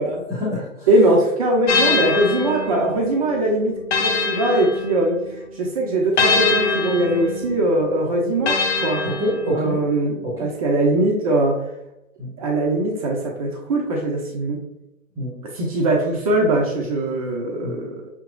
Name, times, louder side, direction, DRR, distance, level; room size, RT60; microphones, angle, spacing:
voice 1, 0.3-0.9 9.0-9.8 10.2-10.5 12.2-12.3 15.2-15.3 17.6-17.8, left 1 dB, 5° right, -6 dB, 1.0 m, -26 dB
voice 2, 0.9-5.2 5.5-9.0 9.5-11.6 12.4-14.6 15.5-18.1, right 1 dB, 25° right, 0 dB, 0.6 m, -21 dB
sound 1, 1.7-5.4 6.2-9.8, left 4 dB, 55° left, 0.7 m, -24 dB
5.8 x 2.9 x 2.4 m, 0.89 s
figure-of-eight pair, 125°, 41 cm